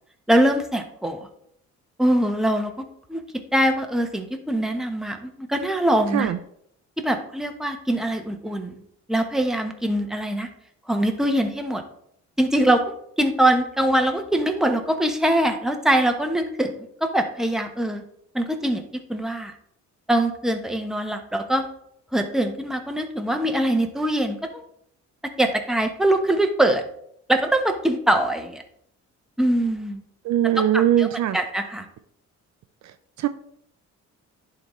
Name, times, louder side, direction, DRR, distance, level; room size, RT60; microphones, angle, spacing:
voice 1, 0.3-1.3 2.0-2.7 3.1-3.2 3.5-6.3 7.0-8.8 9.1-10.5 10.9-11.8 12.4-12.8 13.2-16.7 17.0-18.0 18.3-18.8 19.1-19.5 20.1-21.7 22.1-24.6 25.4-26.8 27.3-28.6 29.4-30.0 30.4-31.8, right 1 dB, ahead, 4 dB, 0.9 m, -23 dB
voice 2, 30.3-31.4 33.2-33.3, right 11 dB, 65° right, 12 dB, 0.5 m, -20 dB
11.0 x 3.9 x 3.1 m, 0.69 s
cardioid pair, 90°, 30 cm